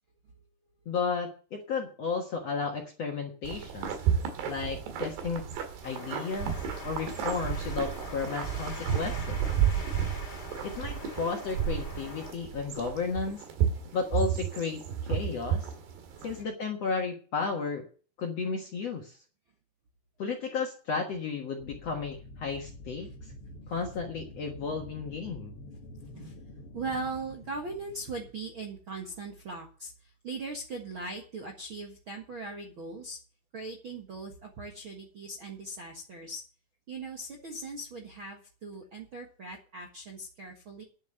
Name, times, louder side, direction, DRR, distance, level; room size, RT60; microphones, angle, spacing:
voice 1, 0.9-4.0 4.4-5.4 5.8-9.4 10.6-13.4 13.9-15.7 16.2-17.8 18.2-19.2 20.2-23.1 23.7-25.6, left 5 dB, 55° left, 1 dB, 1.8 m, -33 dB
sound 1, 3.4-16.4, right 8 dB, 80° right, 3.9 m, -32 dB
sound 2, 5.8-12.3, left 2 dB, 15° left, 1.8 m, -44 dB
voice 2, 16.1-16.5 23.0-23.1 26.0-26.4 26.7-33.2 33.5-36.4 36.9-40.8, right 3 dB, 55° right, 1 dB, 1.4 m, -40 dB
sound 3, 21.6-28.7, left 1 dB, 80° left, 1.3 m, -47 dB
10.5 x 7.6 x 7.8 m, 0.40 s
omnidirectional pair, 4.8 m